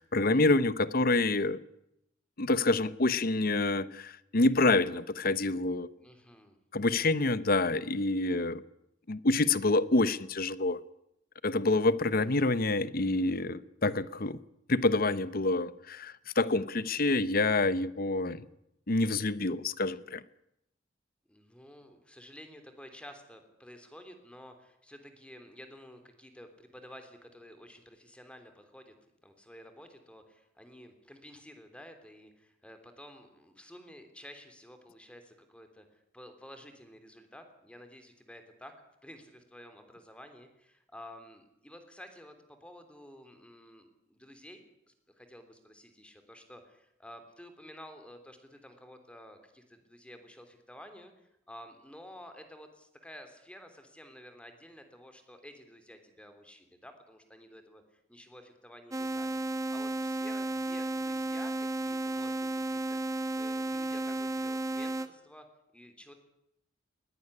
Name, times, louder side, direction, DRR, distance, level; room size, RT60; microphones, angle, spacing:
voice 1, 0.0-1.6 2.4-5.9 6.7-8.6 9.1-10.8 11.4-14.4 14.7-18.5 18.9-20.2, left 2 dB, 55° left, 1.0 m, -27 dB
voice 2, 6.0-6.6 21.3-28.9 29.2-38.7 39.0-57.8 58.1-63.0 63.3-65.5 65.7-66.1, equal, 5° left, 3.3 m, -52 dB
sound 1, 58.9-65.1, right 2 dB, 15° right, 1.4 m, -33 dB
21.0 x 18.0 x 9.9 m
head